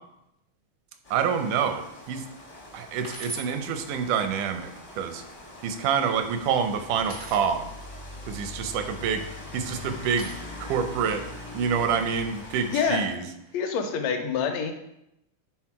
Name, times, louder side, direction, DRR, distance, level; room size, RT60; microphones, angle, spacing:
Rain, 1.0-13.1, left 2 dB, 35° left, 0.5 m, -42 dB
voice 1, 1.1-2.2 2.7-5.2 5.6-7.7 8.3-9.3 9.5-10.3 10.6-11.2 11.5-13.2, right 7 dB, 80° right, 8 dB, 2.2 m, -27 dB
sound 1, 2.4-2.5 3.0-3.5 4.7-5.3 7.0-7.5 8.9-9.4 10.2-10.3, right 2 dB, 55° right, 0.5 m, -40 dB
voice 2, 12.7-13.1 13.5-14.7, left 6 dB, 70° left, 5 dB, 1.8 m, -26 dB
9.0 x 3.8 x 4.8 m, 0.83 s
omnidirectional pair, 3.6 m